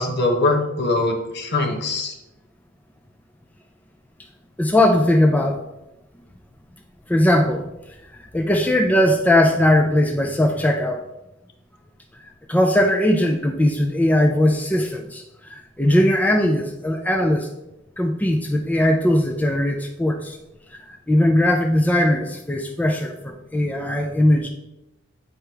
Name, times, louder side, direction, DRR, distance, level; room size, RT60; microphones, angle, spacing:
voice 1, 0.0-2.1, left 2 dB, 55° left, 3 dB, 1.0 m, -22 dB
voice 2, 4.6-5.6 7.1-7.6 8.3-11.0 12.5-17.5 18.0-20.4 20.9-24.5, left 1 dB, 10° left, 2 dB, 0.4 m, -19 dB
8.6 x 4.5 x 3.3 m, 0.92 s
head